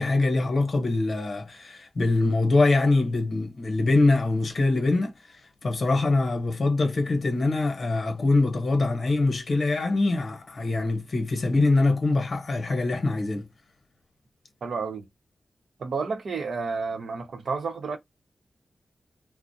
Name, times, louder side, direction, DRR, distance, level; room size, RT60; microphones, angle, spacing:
voice 1, 0.0-5.1 5.6-13.5, left 2 dB, 60° left, 0.8 m, -23 dB
voice 2, 14.6-15.1 15.8-18.0, right 4 dB, 75° right, 0.7 m, -30 dB
2.4 x 2.0 x 2.6 m
cardioid pair, 60°, 0 cm